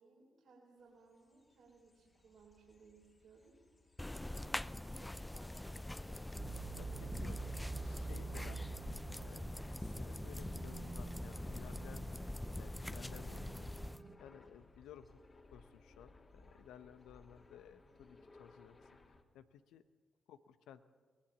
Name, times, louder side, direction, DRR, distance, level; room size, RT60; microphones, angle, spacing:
voice 1, 0.0-3.5 4.3-6.3 6.8-7.8, right 3 dB, 70° right, -3 dB, 4.1 m, -62 dB
sound 1, 0.9-19.2, left 3 dB, 45° left, 3.0 m, -63 dB
sound 2, 4.0-14.0, left 1 dB, 15° left, 0.6 m, -44 dB
voice 2, 4.2-4.5 6.7-8.6 8.9-9.4 9.8-13.6 14.2-15.2 15.5-18.8 19.1-19.8 20.3-20.8, left 9 dB, 80° left, 11 dB, 0.9 m, -57 dB
sound 3, 6.3-14.2, right 4 dB, 40° right, 2.6 m, -48 dB
23.0 x 20.0 x 7.1 m, 1.5 s
hypercardioid pair, 40°, 0 cm